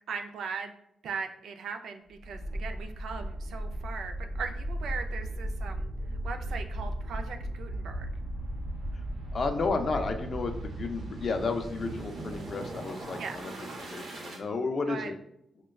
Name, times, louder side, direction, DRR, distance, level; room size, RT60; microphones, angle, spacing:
voice 1, 0.1-0.7 1.0-5.9 6.2-8.1 13.2-13.4 14.9-15.1, right 5 dB, 75° right, 6 dB, 0.4 m, -39 dB
sound 1, 2.2-14.4, right 1 dB, 55° right, 0.8 m, -36 dB
voice 2, 9.3-13.5 13.8-15.2, left 3 dB, 40° left, 6 dB, 0.4 m, -32 dB
6.2 x 2.2 x 2.2 m, 0.77 s
wide cardioid pair, 165°, 0 cm